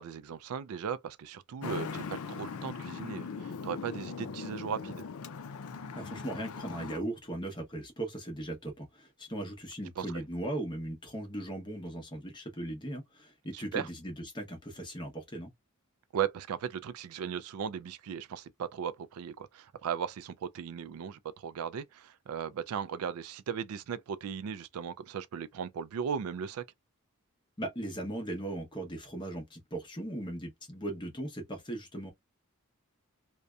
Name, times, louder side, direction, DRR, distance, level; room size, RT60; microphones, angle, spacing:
voice 1, 0.0-5.0 10.0-10.1 13.5-13.9 16.1-26.6, right 7 dB, 80° right, 0.3 m, -37 dB
Traffic noise roadway noise, 1.6-7.0, left 5 dB, 75° left, 0.4 m, -40 dB
voice 2, 5.9-15.5 27.6-32.1, right 1 dB, 20° left, 0.9 m, -38 dB
2.7 x 2.1 x 2.3 m
head